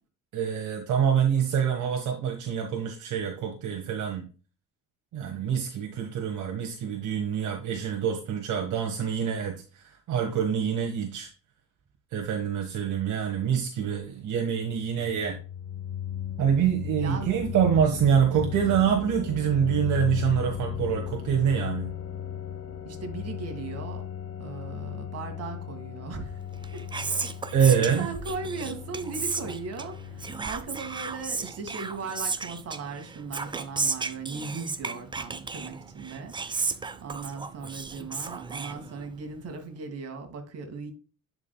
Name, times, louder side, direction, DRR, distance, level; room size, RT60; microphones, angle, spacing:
voice 1, 0.3-4.3 5.1-11.3 12.1-15.4 16.4-21.9 27.5-28.1, right 8 dB, 65° right, 1.4 m, -26 dB
sound 1, 14.6-31.3, left 9 dB, 45° left, 0.8 m, -36 dB
voice 2, 17.0-17.4 22.9-24.1 24.4-26.4 26.7-26.9 27.6-40.9, right 4 dB, 50° right, 2.0 m, -38 dB
Whispering, 26.5-39.3, right 4 dB, 15° right, 0.5 m, -34 dB
10.5 x 4.9 x 2.2 m
cardioid pair, 125°, 32 cm